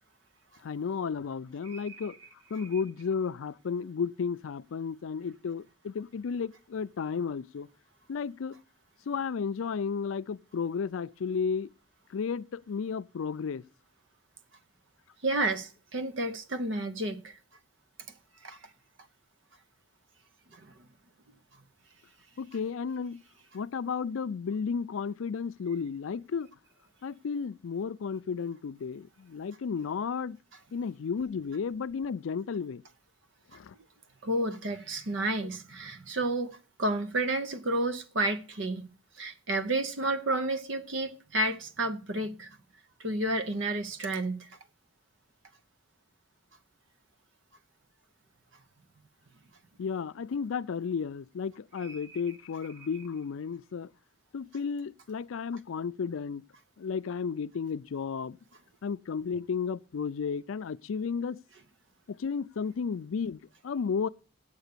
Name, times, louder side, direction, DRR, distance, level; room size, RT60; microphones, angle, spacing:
voice 1, 0.6-2.2 2.5-7.7 8.1-8.6 9.1-11.7 12.1-13.6 22.4-23.2 23.5-26.5 27.0-30.4 30.7-32.8 33.5-33.7 49.8-53.9 54.3-56.4 56.8-58.4 58.8-61.4 62.1-64.1, left 6 dB, 85° left, 0.4 m, -33 dB
voice 2, 15.2-17.4 18.4-18.6 20.5-20.7 34.2-38.9 39.2-42.6 43.0-44.5 51.8-52.2, right 2 dB, 70° right, 0.9 m, -31 dB
8.2 x 8.1 x 6.6 m
head